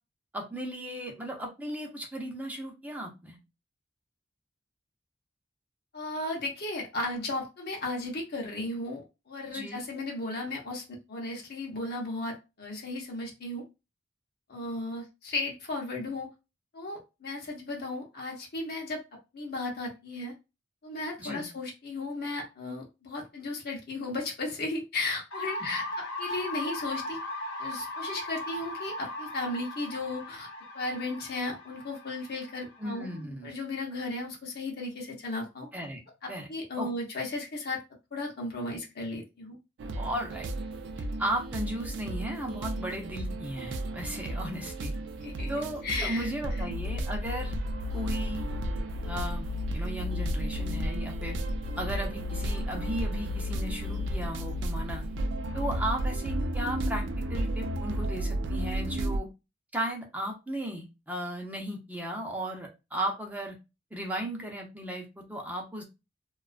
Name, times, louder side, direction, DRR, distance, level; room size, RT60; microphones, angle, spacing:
voice 1, 0.3-3.4 9.5-9.8 21.2-21.5 32.8-33.5 35.7-36.0 36.3-36.5 36.8-36.9 40.0-40.5 41.2-44.9 45.5-47.6 47.9-48.4 49.0-51.4 51.8-55.0 55.5-57.0 57.3-59.3 59.7-63.5 63.9-65.8, right 1 dB, 10° right, 0 dB, 0.6 m, -35 dB
voice 2, 5.9-13.6 14.5-16.3 16.7-19.0 19.3-20.3 20.8-27.2 27.6-30.5 30.7-33.1 33.4-35.7 36.2-37.8 38.1-39.6 45.2-45.5 45.8-46.8, left 2 dB, 55° left, 0 dB, 0.7 m, -35 dB
sound 1, 25.3-33.2, left 1 dB, 90° left, 0.7 m, -38 dB
sound 2, 39.8-59.2, equal, 70° right, 0.3 m, -33 dB
2.3 x 2.3 x 2.4 m, 0.26 s
head